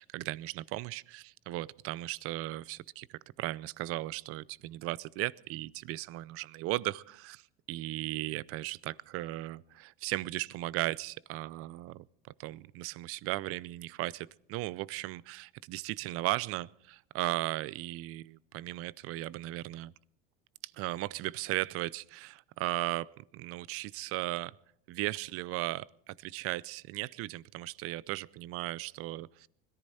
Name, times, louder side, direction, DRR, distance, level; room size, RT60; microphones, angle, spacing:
voice 1, 0.0-7.4 7.7-12.1 12.4-19.9 20.6-24.5 24.9-29.5, right 17 dB, 50° right, 21 dB, 0.6 m, -36 dB
21.0 x 14.0 x 4.2 m, 0.68 s
supercardioid pair, 110°, 29 cm